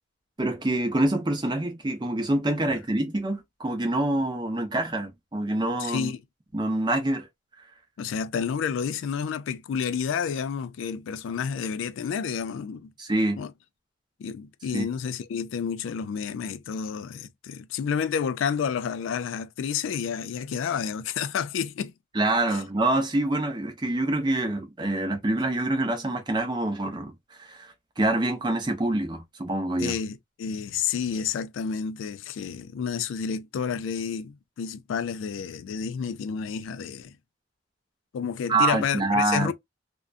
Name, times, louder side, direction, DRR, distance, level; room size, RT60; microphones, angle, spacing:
voice 1, 0.4-6.1 6.5-7.3 13.0-13.4 14.7-14.9 22.1-30.0 38.5-39.5, right 2 dB, 20° right, 0.6 m, -26 dB
voice 2, 5.8-6.2 8.0-12.9 13.4-13.5 14.2-21.9 22.5-22.6 29.8-37.1 38.1-39.5, left 7 dB, 80° left, 0.3 m, -30 dB
2.4 x 2.2 x 2.3 m
head